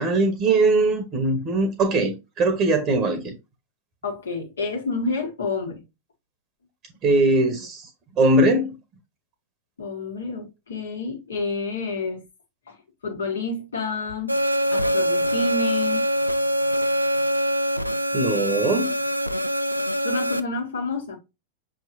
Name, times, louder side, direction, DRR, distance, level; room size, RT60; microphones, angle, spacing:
voice 1, 0.0-3.4 7.0-7.9 8.2-8.8 18.1-19.0, right 2 dB, 30° right, 1.0 m, -21 dB
voice 2, 4.0-5.8 9.8-12.2 12.7-12.8 13.0-14.4 14.7-16.1 20.0-21.2, left 3 dB, 70° left, 1.5 m, -29 dB
sound 1, 14.3-20.4, equal, 90° right, 0.3 m, -24 dB
6.0 x 3.1 x 2.6 m
figure-of-eight pair, 95°, 0 cm